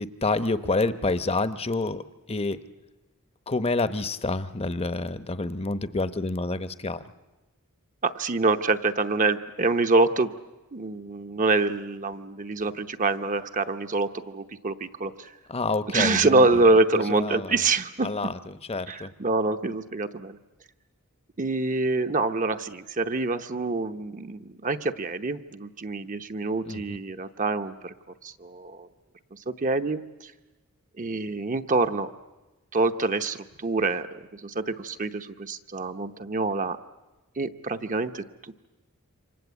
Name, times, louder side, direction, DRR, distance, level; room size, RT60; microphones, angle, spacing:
voice 1, 0.0-2.0 2.3-2.6 3.5-7.0 15.5-16.6 16.9-17.6 18.0-19.1 26.6-27.0, left 3 dB, 30° left, 13 dB, 0.9 m, -28 dB
voice 2, 8.0-10.3 10.7-15.3 15.9-18.1 18.9-20.4 21.4-27.9 28.2-28.9 29.3-30.3 31.0-32.1 32.7-36.8 37.4-38.7, right 3 dB, 35° right, 8 dB, 0.9 m, -26 dB
28.0 x 25.0 x 8.2 m, 1.1 s
head